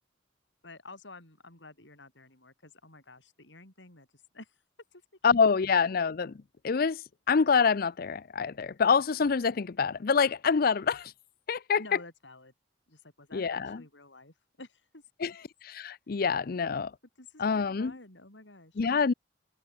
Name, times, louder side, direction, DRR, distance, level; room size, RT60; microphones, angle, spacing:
voice 1, 0.6-4.5 4.9-5.0 5.3-5.4 11.8-12.5 12.9-15.0 16.4-16.7 17.2-18.8, left 2 dB, 90° left, 7.0 m, -51 dB
voice 2, 5.2-6.4 6.6-7.0 7.3-11.1 11.5-11.8 13.3-13.8 15.2-15.3 15.7-16.9 17.4-17.9 18.8-19.1, left 5 dB, 55° left, 0.5 m, -26 dB
head